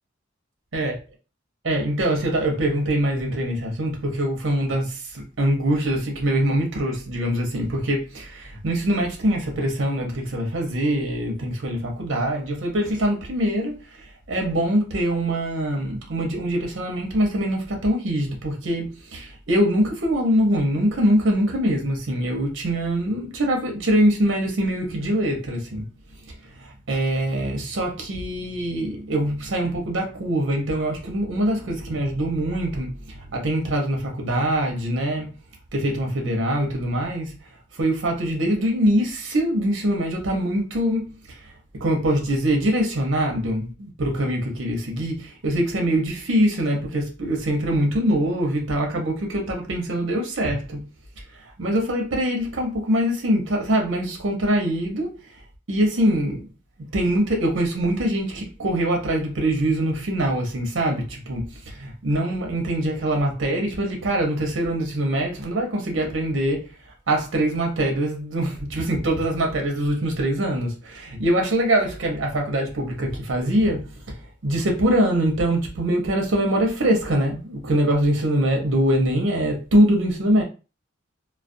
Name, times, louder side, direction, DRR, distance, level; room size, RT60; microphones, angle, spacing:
voice 1, 1.6-25.9 26.6-35.3 35.7-37.3 37.8-41.2 41.8-50.8 51.6-55.1 55.7-56.5 56.8-66.7 67.1-74.2 74.4-80.4, right 1 dB, 70° right, 0.7 m, -23 dB
2.3 x 2.1 x 2.6 m
head